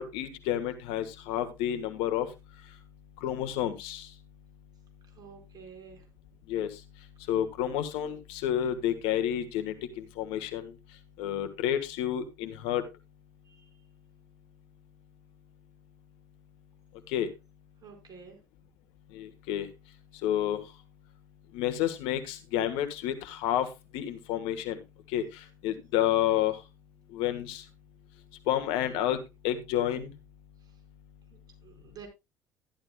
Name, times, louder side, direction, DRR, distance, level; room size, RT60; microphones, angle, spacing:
voice 1, 0.0-2.3 3.2-4.1 6.5-6.7 7.3-10.7 11.2-12.8 17.1-17.3 19.1-19.7 20.2-20.6 21.5-23.7 23.9-24.8 25.1-25.2 25.6-26.6 27.1-27.6 28.5-30.1, left 11 dB, 70° left, 9 dB, 1.4 m, -30 dB
voice 2, 5.2-6.0 13.5-13.7 17.8-18.4 31.3-32.1, right 6 dB, 40° right, 3 dB, 4.7 m, -50 dB
13.0 x 11.5 x 2.3 m, 0.23 s
hypercardioid pair, 60°, 10 cm